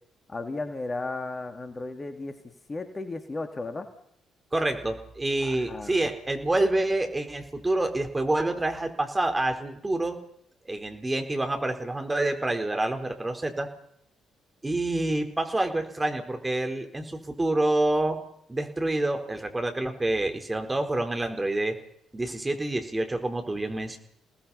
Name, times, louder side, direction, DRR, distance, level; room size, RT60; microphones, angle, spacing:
voice 1, 0.3-2.4 2.7-3.9 5.4-6.0, left 3 dB, 30° left, 7 dB, 2.6 m, -34 dB
voice 2, 4.5-10.2 10.7-13.7 14.6-18.2 18.5-21.8 22.1-24.0, right 2 dB, 20° right, 5 dB, 4.2 m, -27 dB
29.0 x 19.0 x 5.8 m, 0.69 s
figure-of-eight pair, 45°, 0 cm